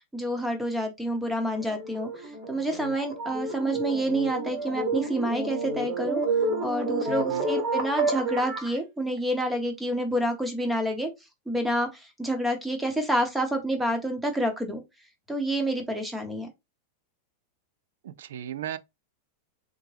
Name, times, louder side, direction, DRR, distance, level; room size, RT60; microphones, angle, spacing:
voice 1, 0.1-2.1 2.5-6.2 6.6-11.1 11.5-11.9 12.2-14.8 15.3-16.5, right 1 dB, 5° right, 0.9 m, -28 dB
sound 1, 1.5-8.8, right 3 dB, 35° right, 1.1 m, -30 dB
voice 2, 7.1-7.5 18.0-18.8, right 11 dB, 80° right, 0.3 m, -36 dB
3.5 x 2.1 x 3.3 m
supercardioid pair, 135°, 0 cm